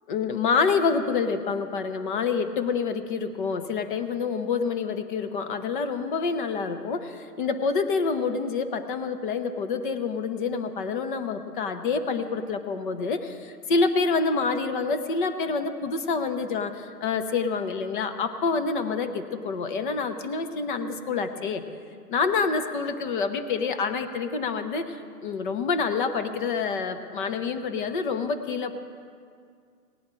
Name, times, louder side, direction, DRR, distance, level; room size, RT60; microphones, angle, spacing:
voice 1, 0.1-21.6 22.1-28.7, left 4 dB, 35° left, 9 dB, 0.7 m, -27 dB
18.0 x 10.5 x 3.7 m, 2.2 s
hypercardioid pair, 135°, 47 cm